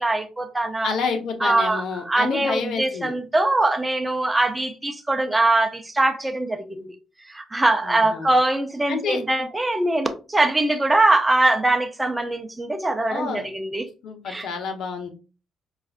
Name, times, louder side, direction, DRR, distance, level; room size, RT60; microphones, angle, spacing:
voice 1, 0.0-0.9 1.4-6.9 7.2-13.9 14.3-14.5, right 2 dB, 15° right, 0.6 m, -22 dB
voice 2, 0.8-3.1 7.8-8.3 8.9-9.2 13.1-13.5 14.0-15.1, left 5 dB, 75° left, 0.8 m, -29 dB
5.4 x 2.4 x 2.4 m
cardioid pair, 90°, 0 cm